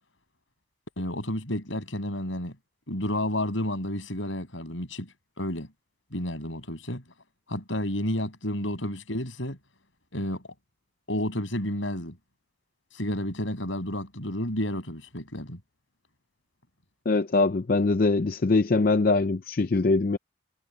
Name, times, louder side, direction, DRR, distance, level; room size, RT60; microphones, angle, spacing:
voice 1, 1.0-2.6 2.9-5.7 6.1-7.0 7.5-9.6 10.1-10.4 11.1-12.2 12.9-15.6, left 1 dB, 80° left, 7.6 m, -31 dB
voice 2, 17.1-20.2, left 3 dB, 50° left, 0.5 m, -23 dB
head